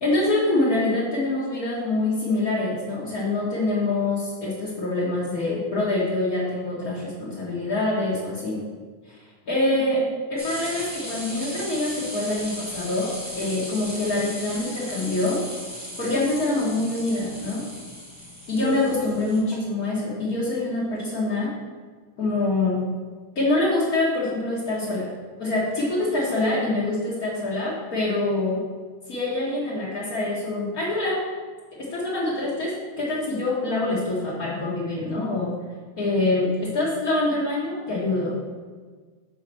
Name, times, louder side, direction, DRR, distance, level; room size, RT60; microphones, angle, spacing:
voice 1, 0.0-8.6 9.1-15.4 16.0-17.6 18.5-21.5 22.2-22.8 23.3-25.1 25.4-28.6 29.1-31.2 31.8-35.6 36.0-38.4, left 2 dB, 80° left, -7 dB, 0.8 m, -25 dB
sound 1, 10.4-19.4, equal, 10° right, 0.4 m, -37 dB
5.5 x 4.3 x 6.1 m, 1.5 s
omnidirectional pair, 3.5 m